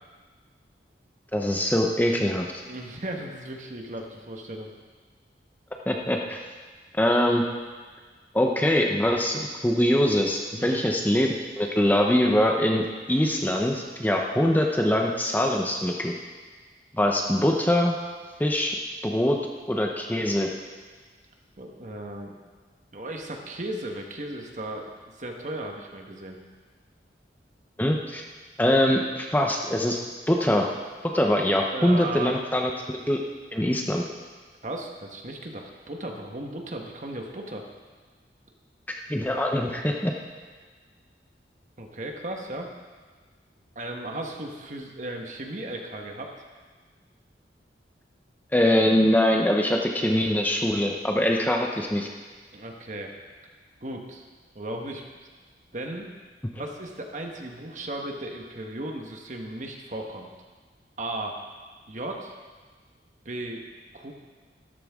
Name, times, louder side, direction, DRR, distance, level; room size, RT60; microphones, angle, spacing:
voice 1, 1.3-2.5 5.9-6.4 6.9-7.4 8.3-16.1 17.0-18.0 18.4-18.8 19.0-19.4 19.7-20.5 27.8-28.2 28.6-30.0 30.3-30.7 31.1-33.2 33.5-34.0 39.1-40.1 48.5-52.1, left 1 dB, 10° left, 1 dB, 0.7 m, -23 dB
voice 2, 2.6-4.7 10.6-10.8 21.6-22.4 22.9-24.9 25.2-26.4 31.6-32.4 34.6-37.6 41.8-42.7 43.7-46.3 52.5-53.1 53.8-54.3 54.5-55.0 55.7-56.1 56.5-60.3 61.0-61.4 61.9-62.3 63.2-63.6 63.9-64.1, right 1 dB, 45° right, 2 dB, 1.3 m, -36 dB
13.5 x 12.5 x 3.6 m, 1.4 s
head